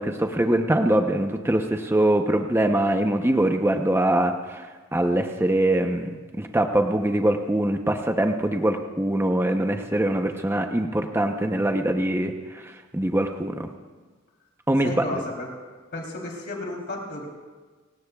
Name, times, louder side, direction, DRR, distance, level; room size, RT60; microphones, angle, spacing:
voice 1, 0.0-13.7 14.7-15.2, right 1 dB, 10° right, 4 dB, 0.7 m, -23 dB
voice 2, 14.8-15.5 15.9-17.3, left 2 dB, 55° left, -1 dB, 3.3 m, -33 dB
28.0 x 16.5 x 2.4 m, 1.4 s
head